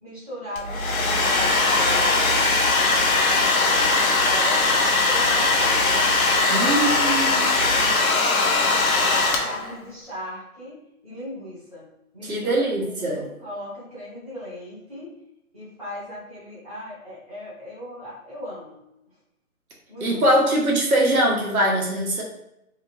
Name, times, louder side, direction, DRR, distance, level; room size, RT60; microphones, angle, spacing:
voice 1, 0.0-2.2 3.1-6.9 7.7-8.7 9.4-15.2 15.5-18.8 19.9-20.4, left 1 dB, 25° right, -11 dB, 0.7 m, -38 dB
Domestic sounds home sounds, 0.6-9.8, left 3 dB, 70° left, 0.6 m, -20 dB
voice 2, 6.5-7.5 12.2-13.3 20.0-22.2, right 1 dB, 70° right, -1 dB, 0.9 m, -22 dB
2.8 x 2.4 x 2.7 m, 0.85 s
hypercardioid pair, 180°, 44 cm